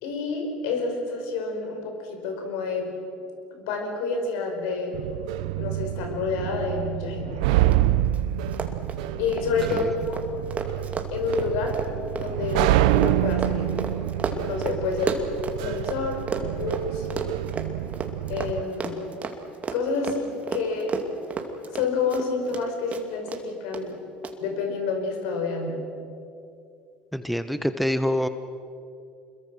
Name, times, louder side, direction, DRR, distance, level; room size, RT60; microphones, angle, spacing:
voice 1, 0.0-2.9 3.5-4.9 5.6-7.4 9.2-10.2 11.1-11.8 12.1-13.7 14.3-15.1 15.6-17.1 18.3-19.0 19.7-20.9 21.7-24.0 24.4-25.8, left 4 dB, 75° left, 3 dB, 5.2 m, -29 dB
sound 1, 4.9-18.6, right 14 dB, 80° right, 0.7 m, -27 dB
Run, 7.7-7.8 8.0-8.2 8.5-16.0 16.3-22.6 22.9-23.4 23.7-23.8 24.2-24.3, right 5 dB, 35° right, 2.5 m, -32 dB
voice 2, 27.1-28.3, equal, ahead, 10 dB, 1.1 m, -26 dB
27.0 x 22.0 x 6.3 m, 2.6 s
hypercardioid pair, 80°, 4 cm